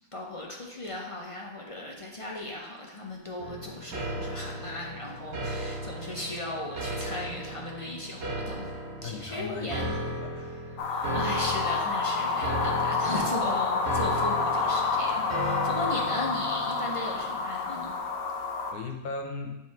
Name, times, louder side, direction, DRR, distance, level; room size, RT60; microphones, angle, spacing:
voice 1, 0.1-8.7 9.0-10.0 10.8-17.9, left 1 dB, 40° left, -1 dB, 0.4 m, -37 dB
sound 1, 3.4-17.3, equal, 50° right, 1.2 m, -36 dB
voice 2, 9.0-10.5 18.7-19.5, left 4 dB, 90° left, 3 dB, 1.3 m, -38 dB
sound 2, 10.8-18.7, left 4 dB, 65° left, 1.0 m, -29 dB
7.3 x 3.2 x 4.6 m, 0.94 s
omnidirectional pair, 1.6 m